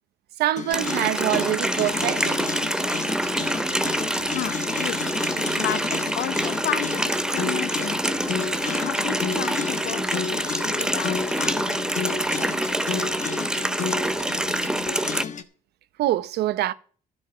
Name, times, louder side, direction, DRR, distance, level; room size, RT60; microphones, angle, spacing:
voice 1, 0.4-2.5 16.0-16.7, right 14 dB, 75° right, 0.9 m, -25 dB
sound 1, 0.5-15.4, left 6 dB, 45° left, 1.3 m, -32 dB
Water tap faucet, 0.7-15.2, right 1 dB, 5° right, 0.7 m, -26 dB
voice 2, 4.3-5.1 5.6-11.8, left 12 dB, 80° left, 1.0 m, -33 dB
12.0 x 5.3 x 8.7 m
cardioid pair, 110°, 17 cm